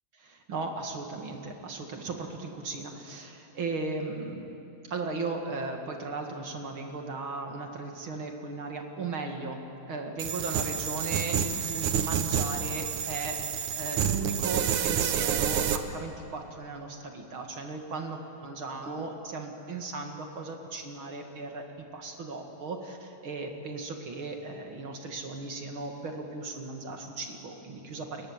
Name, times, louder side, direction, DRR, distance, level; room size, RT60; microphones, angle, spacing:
voice 1, 0.2-4.4 4.9-13.4 13.8-21.6 21.9-28.3, right 3 dB, 45° right, 3 dB, 2.3 m, -37 dB
sound 1, 10.2-15.8, right 8 dB, 70° right, 2.3 m, -29 dB
30.0 x 22.0 x 7.3 m, 2.8 s
omnidirectional pair, 3.9 m